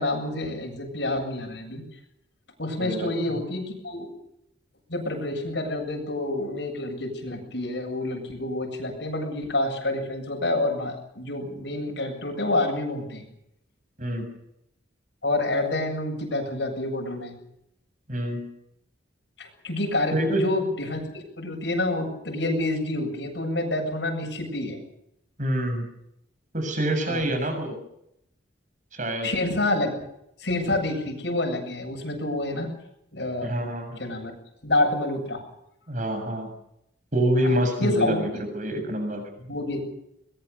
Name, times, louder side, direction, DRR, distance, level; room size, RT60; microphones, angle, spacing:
voice 1, 0.0-1.8 2.6-4.1 4.9-13.3 15.2-17.3 19.4-24.8 27.1-27.3 29.2-29.9 30.4-32.7 33.1-33.5 34.0-34.3 34.6-35.4 37.4-37.5 37.8-38.2 39.4-39.8, left 2 dB, 70° left, 3 dB, 7.9 m, -28 dB
voice 2, 2.8-3.1 14.0-14.3 18.1-18.5 20.1-20.4 25.4-25.9 26.5-27.8 28.9-29.3 33.4-34.0 35.9-36.5 37.1-39.2, right 1 dB, 45° right, 6 dB, 7.1 m, -26 dB
22.5 x 22.0 x 7.0 m, 0.79 s
head